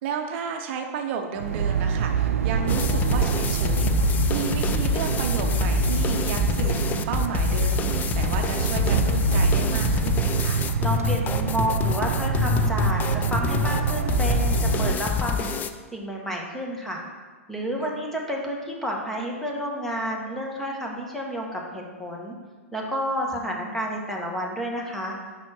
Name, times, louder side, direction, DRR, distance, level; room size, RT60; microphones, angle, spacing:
voice 1, 0.0-10.7 17.8-18.0 23.3-23.9, right 6 dB, 50° right, 3 dB, 0.7 m, -33 dB
sound 1, 1.4-15.0, right 7 dB, 85° right, 0.4 m, -25 dB
sound 2, 2.7-15.7, left 7 dB, 20° left, 0.4 m, -26 dB
voice 2, 10.8-15.4 15.9-17.0 17.5-22.3 22.7-25.1, equal, 5° left, -1 dB, 1.1 m, -30 dB
5.6 x 4.2 x 6.1 m, 1.4 s
hypercardioid pair, 115°, 8 cm